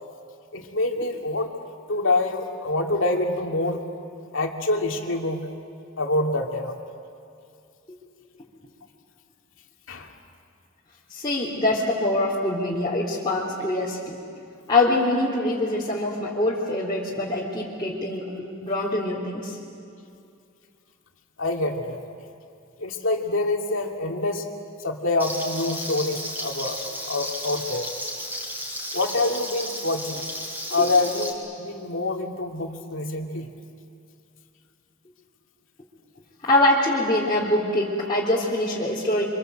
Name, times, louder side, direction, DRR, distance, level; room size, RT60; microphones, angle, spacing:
voice 1, 0.5-1.5 1.9-3.8 4.3-5.4 6.0-6.7 9.9-10.1 21.4-22.0 22.8-24.5 24.8-26.8 27.1-27.9 28.9-30.2 30.7-33.5, left 2 dB, 70° left, 2 dB, 2.6 m, -26 dB
voice 2, 11.1-14.2 14.7-18.3 18.6-19.6 30.8-30.9 36.4-39.2, left 1 dB, 25° left, -7 dB, 3.6 m, -24 dB
Frying (food), 25.2-31.3, equal, 10° right, 5.5 m, -33 dB
28.5 x 26.0 x 8.0 m, 2.4 s
head